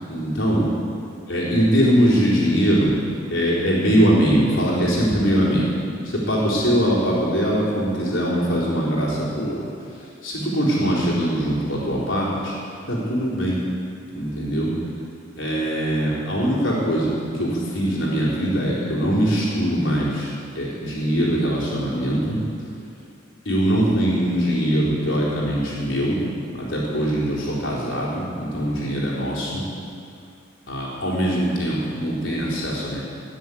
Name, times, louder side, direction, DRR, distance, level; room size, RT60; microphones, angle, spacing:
voice 1, 0.1-0.7 1.3-3.0 3.3-5.7 6.0-9.5 10.2-12.6 12.9-13.6 14.1-14.7 15.4-20.3 20.6-22.4 23.5-26.2 26.7-29.6 30.7-33.1, equal, 75° left, -6 dB, 4.1 m, -22 dB
19.0 x 7.6 x 8.6 m, 2.4 s
head